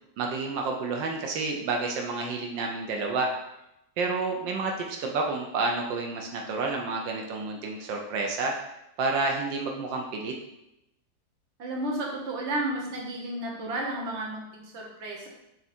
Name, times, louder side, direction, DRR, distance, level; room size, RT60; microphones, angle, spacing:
voice 1, 0.2-3.3 4.0-8.5 9.0-10.3, right 3 dB, 80° right, 1 dB, 1.5 m, -29 dB
voice 2, 11.6-15.3, right 1 dB, 40° right, -2 dB, 1.3 m, -32 dB
5.9 x 4.0 x 4.3 m, 0.86 s
omnidirectional pair, 2.0 m